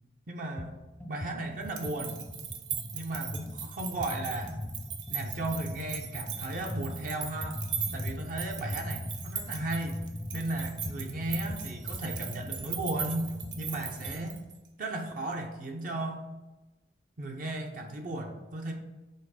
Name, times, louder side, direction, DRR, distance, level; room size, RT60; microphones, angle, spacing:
voice 1, 0.3-0.8 1.1-2.2 2.9-4.6 5.1-7.6 7.9-10.0 10.3-14.4 14.8-16.3 17.2-18.7, right 2 dB, 50° right, 2 dB, 0.6 m, -35 dB
sound 1, 0.6-0.7 1.0-14.3, left 1 dB, 10° left, 0.4 m, -40 dB
sound 2, 1.6-14.7, right 8 dB, 85° right, 0.7 m, -39 dB
5.5 x 3.6 x 4.8 m, 1.1 s
head